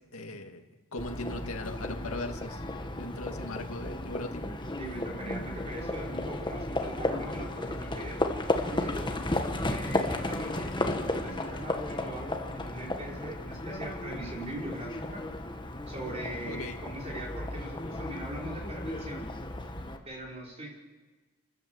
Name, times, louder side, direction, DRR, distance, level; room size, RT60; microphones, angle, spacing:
voice 1, 0.1-0.6 0.9-2.6 2.9-4.5 16.5-16.8, left 2 dB, 80° left, 4 dB, 2.1 m, -38 dB
Livestock farm animals working animals, 1.0-20.0, left 1 dB, 20° left, 1.3 m, -34 dB
voice 2, 4.8-8.2 8.6-9.1 9.7-15.2 15.9-19.3 20.0-20.7, right 1 dB, 30° right, -2 dB, 4.9 m, -41 dB
28.5 x 13.5 x 8.0 m, 1.3 s
head